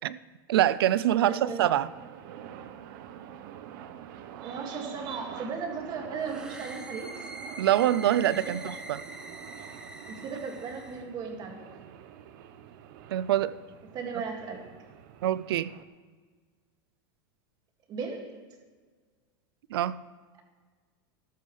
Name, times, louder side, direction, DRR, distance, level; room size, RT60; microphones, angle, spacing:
voice 1, 0.5-1.9 7.6-8.6 13.1-13.5 15.2-15.7 19.7-20.0, right 12 dB, 85° right, 0.4 m, -24 dB
voice 2, 1.2-1.7 4.4-7.1 8.2-8.5 10.1-11.7 13.9-14.7 17.9-18.5, right 5 dB, 35° right, 2.1 m, -36 dB
sound 1, 1.6-15.8, right 9 dB, 60° right, 0.9 m, -46 dB
sound 2, 6.2-11.0, right 1 dB, 5° right, 1.0 m, -44 dB
13.5 x 12.0 x 3.3 m
supercardioid pair, 135°, 12 cm